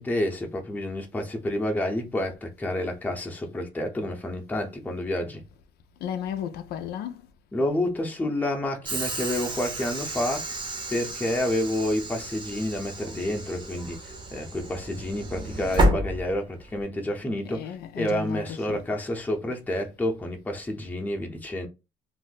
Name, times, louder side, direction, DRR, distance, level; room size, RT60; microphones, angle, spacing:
voice 1, 0.0-5.4 7.5-10.4 10.9-21.7, left 1 dB, 10° left, 0.7 m, -29 dB
voice 2, 6.0-7.2 17.4-18.9, left 9 dB, 70° left, 0.4 m, -34 dB
Train / Sliding door, 8.8-16.8, right 1 dB, 30° right, 0.8 m, -30 dB
2.6 x 2.0 x 3.9 m
cardioid pair, 110°, 17 cm